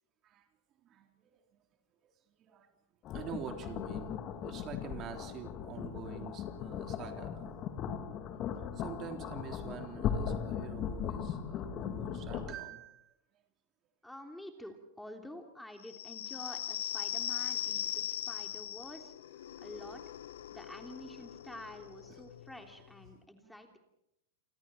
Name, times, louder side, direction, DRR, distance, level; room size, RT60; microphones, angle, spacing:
voice 1, 0.8-1.4 2.0-2.1 2.4-2.8 3.1-7.6 8.5-13.2 18.2-18.4 22.1-22.2 23.4-23.5, right 8 dB, 35° right, 4 dB, 3.4 m, -47 dB
sound 1, 3.0-12.5, left 8 dB, 40° left, 3.1 m, -38 dB
voice 2, 14.0-20.0 20.5-23.8, left 1 dB, 5° left, 4 dB, 3.2 m, -49 dB
sound 2, 15.8-23.1, left 11 dB, 75° left, 1.0 m, -40 dB
29.5 x 25.5 x 4.4 m, 0.84 s
hypercardioid pair, 100°, 0 cm